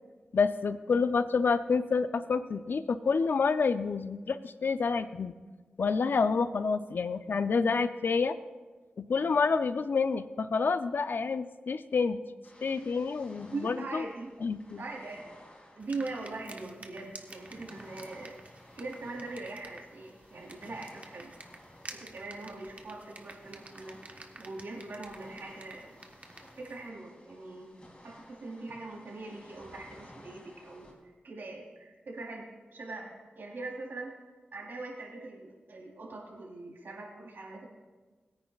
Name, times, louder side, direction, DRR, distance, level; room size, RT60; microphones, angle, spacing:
voice 1, 0.3-5.3 5.8-8.4 9.0-12.2 12.6-14.0 14.4-14.8, left 5 dB, 70° left, 12 dB, 0.4 m, -28 dB
sound 1, 12.4-30.9, left 1 dB, 30° left, 2.6 m, -56 dB
voice 2, 13.5-14.3 14.8-15.2 15.7-18.4 18.7-21.3 21.9-25.9 26.5-27.7 28.0-34.1 34.5-37.6, right 3 dB, 80° right, -2 dB, 3.4 m, -42 dB
sound 2, 15.8-26.9, right 2 dB, 45° right, 1.2 m, -51 dB
21.0 x 9.5 x 2.4 m, 1.3 s
wide cardioid pair, 70°, 4 cm